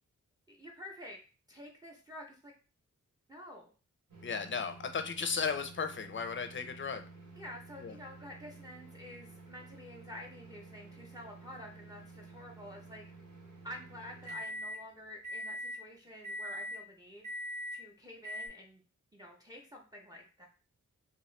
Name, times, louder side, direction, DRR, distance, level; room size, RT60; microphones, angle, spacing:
voice 1, 0.5-1.2 1.5-2.5 3.3-3.7 7.4-13.0 13.6-17.3 17.7-18.8 19.1-20.5, left 1 dB, 10° right, 0 dB, 0.6 m, -49 dB
sound 1, 4.1-14.8 15.2-15.8 16.2-16.8 17.2-17.8 18.2-18.5, equal, 80° right, 1.1 m, -46 dB
voice 2, 4.2-7.0 7.8-7.9, left 5 dB, 40° left, 8 dB, 0.5 m, -35 dB
2.9 x 2.6 x 3.1 m, 0.36 s
wide cardioid pair, 85°, 31 cm